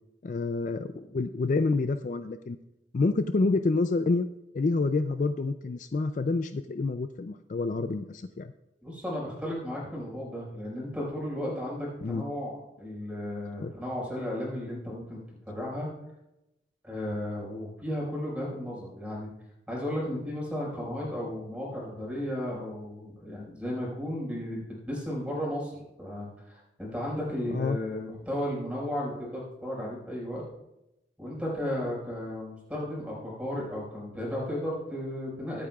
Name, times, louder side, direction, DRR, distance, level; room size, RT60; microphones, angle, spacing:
voice 1, 0.2-2.6 2.9-4.3 4.5-8.5 12.0-12.3 13.6-13.7 27.5-27.8, left 3 dB, 45° left, 9 dB, 0.4 m, -28 dB
voice 2, 8.8-15.2 15.5-15.9 16.8-19.3 19.7-30.4 31.2-35.7, left 1 dB, 5° right, -4 dB, 5.1 m, -34 dB
23.5 x 8.5 x 2.4 m, 0.90 s
head